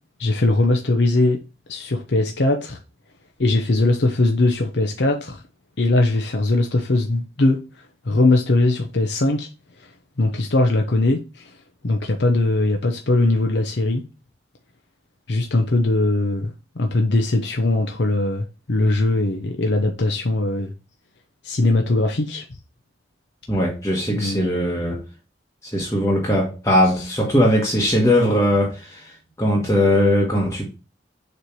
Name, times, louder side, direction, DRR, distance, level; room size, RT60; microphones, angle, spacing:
voice 1, 0.2-1.4 1.7-2.8 3.4-5.4 5.8-7.6 8.0-9.5 9.8-9.9 10.2-11.5 11.8-14.0 15.3-20.7 21.4-22.4 24.1-24.8 27.0-27.1, left 2 dB, 70° left, 0.8 m, -20 dB
voice 2, 23.5-25.0 25.6-30.7, left 1 dB, 15° left, 1.3 m, -20 dB
6.8 x 3.3 x 4.5 m
head